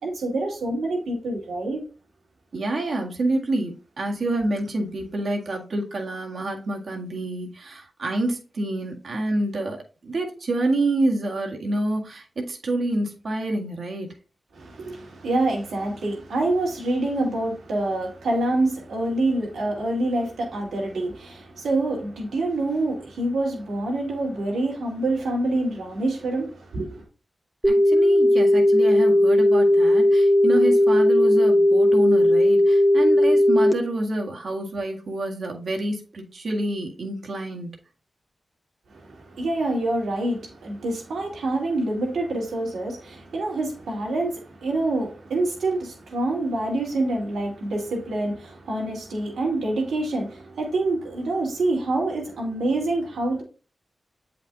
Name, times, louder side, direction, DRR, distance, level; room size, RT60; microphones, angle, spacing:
voice 1, 0.0-1.8 14.5-27.0 38.9-53.4, right 2 dB, 85° right, 2.5 m, -26 dB
voice 2, 2.5-9.8 10.0-14.1 27.7-37.7, right 2 dB, 70° right, 1.8 m, -27 dB
sound 1, 27.6-33.7, left 1 dB, 5° right, 1.4 m, -17 dB
8.0 x 5.1 x 2.7 m
cardioid pair, 40°, 0 cm